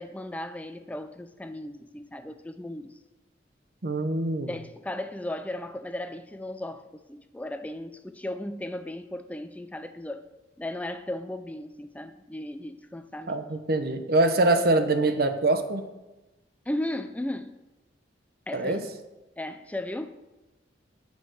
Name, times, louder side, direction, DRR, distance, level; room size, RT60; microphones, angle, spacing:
voice 1, 0.0-3.0 4.5-10.3 10.6-13.4 16.7-17.6 18.5-18.8 19.4-20.1, left 1 dB, 10° left, 0.4 m, -36 dB
voice 2, 3.8-4.5 13.3-15.9 18.5-18.8, right 2 dB, 55° right, 0.9 m, -24 dB
9.1 x 7.1 x 6.3 m
head